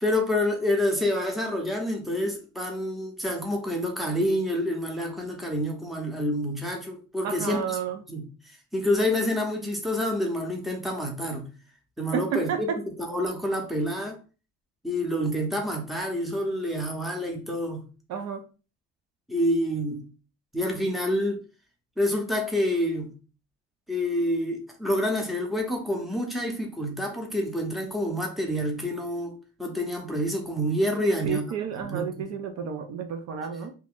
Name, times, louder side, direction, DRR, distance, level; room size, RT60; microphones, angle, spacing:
voice 1, 0.0-7.8 8.1-11.5 12.0-12.7 13.1-14.2 14.8-17.9 19.3-20.0 20.5-21.4 22.0-23.1 23.9-29.3 29.6-31.5 31.8-32.3, left 1 dB, ahead, 0.6 m, -28 dB
voice 2, 7.2-8.0 12.1-12.8 18.1-18.4 31.0-33.7, right 7 dB, 60° right, 0.6 m, -31 dB
2.9 x 2.6 x 3.5 m
cardioid pair, 145°, 29 cm